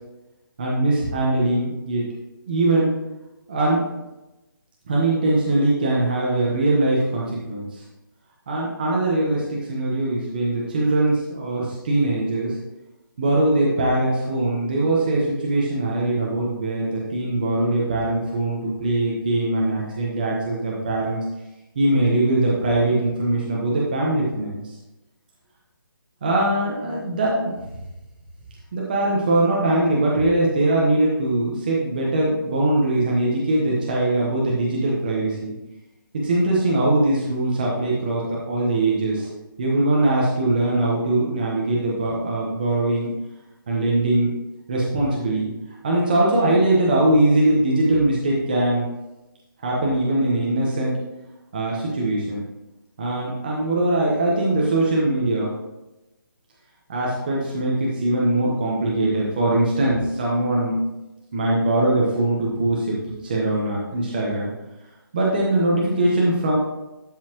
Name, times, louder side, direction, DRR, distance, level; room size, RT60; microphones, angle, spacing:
voice 1, 0.6-2.0 2.5-2.9 3.5-3.8 4.9-7.8 8.5-12.6 13.2-21.2 21.7-24.7 26.2-27.5 28.7-35.5 36.2-39.3 39.6-43.1 43.7-44.3 44.7-45.5 45.8-48.9 49.6-50.9 51.5-52.4 53.0-55.5 56.9-60.8 61.3-64.5 65.1-66.5, right 2 dB, 25° right, -4 dB, 1.1 m, -21 dB
12.5 x 5.6 x 3.0 m, 1.0 s
hypercardioid pair, 180°, 12 cm